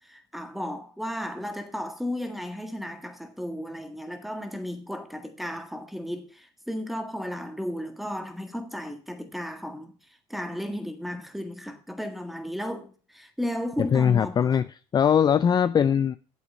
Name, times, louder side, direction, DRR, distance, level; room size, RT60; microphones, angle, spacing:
voice 1, 0.0-9.9 10.3-14.6, equal, ahead, 1.7 m, -34 dB
voice 2, 13.8-14.7 14.9-16.2, left 8 dB, 30° left, 0.4 m, -21 dB
8.6 x 7.7 x 5.5 m
supercardioid pair, 100°, 14 cm